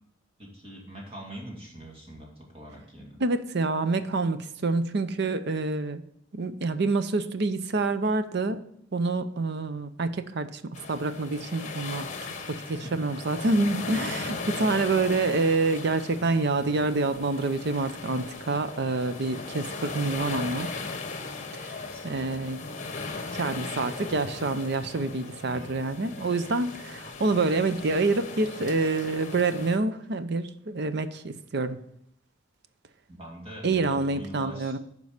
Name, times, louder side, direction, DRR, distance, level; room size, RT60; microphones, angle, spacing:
voice 1, 0.4-3.2 12.3-12.5 12.8-12.9 21.8-22.6 25.5-25.7 33.1-34.8, right 1 dB, 30° right, -1 dB, 2.2 m, -43 dB
voice 2, 3.2-6.0 6.3-8.6 8.9-10.6 10.9-12.1 12.5-20.7 21.5-21.8 22.0-22.6 23.3-31.8 33.6-34.8, right 3 dB, 55° right, 11 dB, 0.6 m, -27 dB
sound 1, 10.7-29.8, left 3 dB, 40° left, 1.1 m, -38 dB
9.5 x 5.4 x 4.9 m, 0.74 s
head